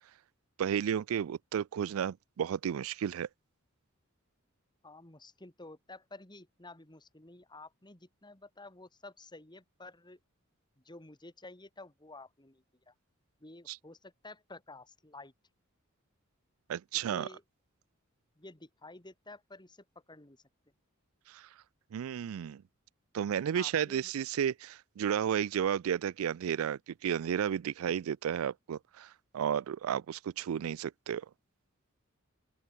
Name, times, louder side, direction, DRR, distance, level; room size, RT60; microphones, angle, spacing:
voice 1, 0.6-3.3 13.7-13.8 16.7-17.3 21.3-21.5 21.9-22.6 23.1-31.3, right 8 dB, 75° right, 0.3 m, -33 dB
voice 2, 4.8-10.2 10.8-12.9 13.4-15.3 16.9-17.4 18.4-20.4 23.5-24.1, left 2 dB, 20° left, 2.5 m, -51 dB
open air
head